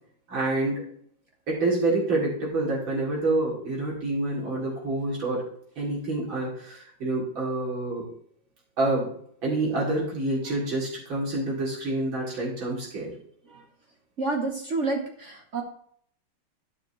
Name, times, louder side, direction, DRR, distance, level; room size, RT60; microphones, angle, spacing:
voice 1, 0.3-0.8 1.5-5.4 5.8-8.0 8.8-9.1 9.4-13.1, right 2 dB, 65° right, -4 dB, 3.5 m, -27 dB
voice 2, 14.2-15.6, right 3 dB, 50° right, 2 dB, 0.9 m, -29 dB
12.5 x 6.0 x 3.1 m, 0.64 s
omnidirectional pair, 2.3 m